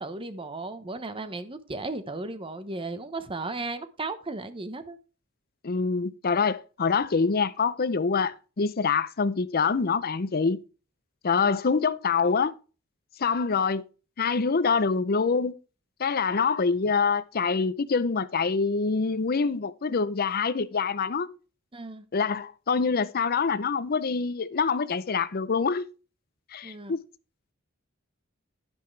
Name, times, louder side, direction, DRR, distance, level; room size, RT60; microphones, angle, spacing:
voice 1, 0.0-5.0 21.7-22.0 26.6-26.9, right 3 dB, 25° right, 1.0 m, -35 dB
voice 2, 5.6-10.6 11.2-12.5 13.2-13.8 14.2-15.6 16.0-21.3 22.1-25.9 26.5-27.0, left 5 dB, 45° left, 0.6 m, -25 dB
10.5 x 9.1 x 3.3 m
head